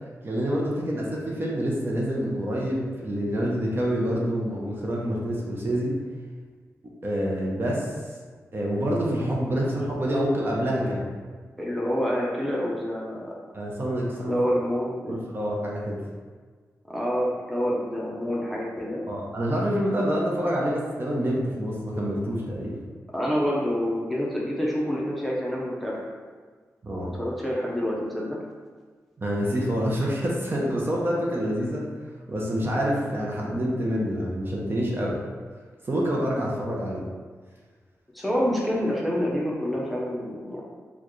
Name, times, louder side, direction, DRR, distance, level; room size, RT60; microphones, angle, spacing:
voice 1, 0.2-6.0 7.0-7.9 8.5-11.0 13.5-14.4 15.1-16.0 19.1-22.8 26.8-27.1 29.2-31.9 32.3-35.2 35.9-37.0, equal, 40° right, -3 dB, 0.7 m, -27 dB
voice 2, 11.6-13.3 14.3-15.2 16.9-19.0 23.1-26.0 26.9-28.4 38.1-40.6, equal, ahead, -4 dB, 0.7 m, -27 dB
4.3 x 2.3 x 3.1 m, 1.5 s
wide cardioid pair, 85°, 6 cm